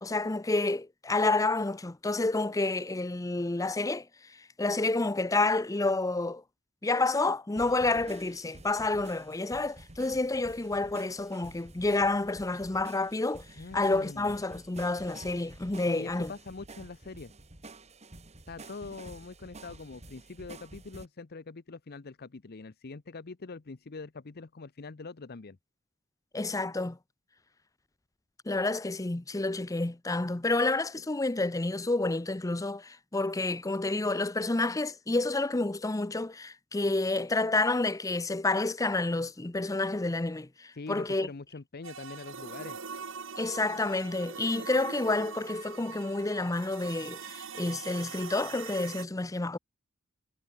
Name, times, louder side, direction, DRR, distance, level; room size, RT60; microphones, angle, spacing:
voice 1, 0.0-6.4 6.8-13.5 13.7-16.3 26.3-27.0 28.5-41.3 43.4-49.6, left 2 dB, 15° left, 0.6 m, -29 dB
sound 1, 7.6-21.1, right 2 dB, 35° right, 2.2 m, -50 dB
voice 2, 13.6-14.3 15.9-17.3 18.5-25.6 40.7-42.8, left 3 dB, 50° left, 0.7 m, -43 dB
sound 2, 41.8-49.1, right 5 dB, 70° right, 2.2 m, -42 dB
head